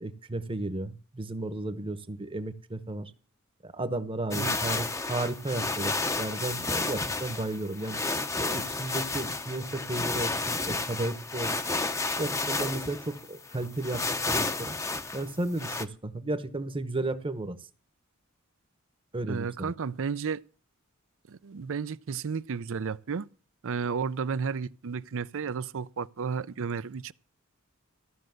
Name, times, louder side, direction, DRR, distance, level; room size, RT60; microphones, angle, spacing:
voice 1, 0.0-3.1 3.6-8.0 8.4-11.5 12.2-14.7 15.1-17.6 19.1-19.7, right 2 dB, 25° right, 0.9 m, -34 dB
sound 1, 4.3-15.8, left 3 dB, 15° left, 0.7 m, -31 dB
voice 2, 4.3-4.8 19.3-20.4 21.3-23.3 23.6-27.1, right 5 dB, 65° right, 0.5 m, -33 dB
14.0 x 6.4 x 7.8 m
head